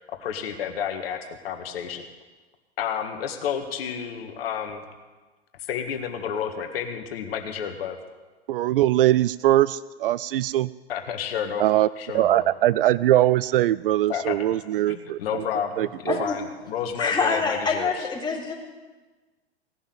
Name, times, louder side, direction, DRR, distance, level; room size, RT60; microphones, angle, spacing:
voice 1, 0.1-1.2 1.4-2.0 2.8-4.8 5.7-8.0 10.9-11.6 12.0-12.5 14.1-14.4 14.9-18.1, left 8 dB, 60° left, 5 dB, 1.7 m, -30 dB
voice 2, 8.5-10.7 11.6-11.9 12.1-15.4 15.8-16.2, right 14 dB, 55° right, 19 dB, 0.4 m, -21 dB
voice 3, 16.1-16.4 17.0-18.5, left 4 dB, 15° left, -2 dB, 3.7 m, -25 dB
18.0 x 7.2 x 9.3 m, 1.3 s
figure-of-eight pair, 100°, 33 cm